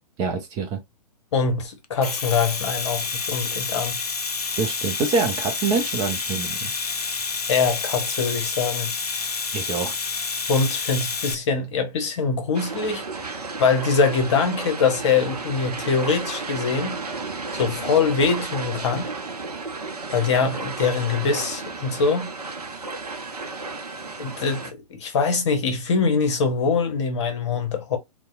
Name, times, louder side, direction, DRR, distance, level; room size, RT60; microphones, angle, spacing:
voice 1, 0.2-0.8 4.6-6.8 9.5-10.0, right 4 dB, 20° right, 0.4 m, -25 dB
voice 2, 1.3-4.0 7.5-8.9 10.5-13.0 13.6-17.0 17.5-19.1 20.1-22.3 24.2-28.0, left 5 dB, 45° left, 0.9 m, -23 dB
Domestic sounds home sounds, 1.8-11.3, left 4 dB, 75° left, 0.5 m, -29 dB
sound 1, 12.5-24.7, right 3 dB, 80° right, 0.6 m, -33 dB
2.7 x 2.1 x 2.3 m
figure-of-eight pair, 115°, 20 cm